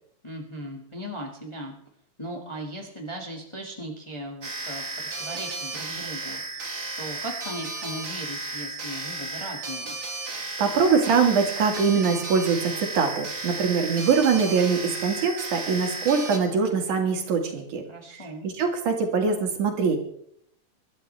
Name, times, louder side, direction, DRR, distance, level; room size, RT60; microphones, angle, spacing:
voice 1, 0.2-1.7 2.2-6.7 7.0-10.0 17.9-18.5, right 1 dB, 10° left, 0 dB, 1.5 m, -38 dB
sound 1, 4.4-16.4, right 2 dB, 30° right, 2.0 m, -34 dB
voice 2, 10.3-17.8 18.1-20.0, right 5 dB, 85° right, 3 dB, 3.5 m, -23 dB
24.5 x 12.0 x 3.4 m, 0.70 s
omnidirectional pair, 3.4 m